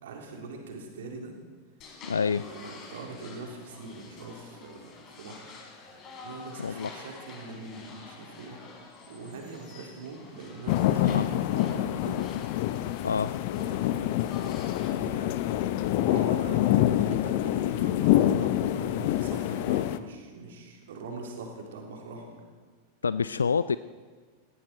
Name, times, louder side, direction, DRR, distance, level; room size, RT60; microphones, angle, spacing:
voice 1, 0.0-1.3 2.3-5.6 6.2-12.3 13.6-15.4 15.9-22.4, right 3 dB, 60° right, 1 dB, 3.3 m, -42 dB
sound 1, 1.8-14.9, left 4 dB, 35° left, 3.5 m, -48 dB
voice 2, 2.0-2.4 6.6-6.9 11.0-11.3 13.0-13.3 23.0-23.8, left 5 dB, 75° left, 15 dB, 0.3 m, -27 dB
sound 2, 10.7-20.0, left 13 dB, 50° left, 0.7 m, -26 dB
19.0 x 16.5 x 4.3 m, 1.5 s
figure-of-eight pair, 90°, 0 cm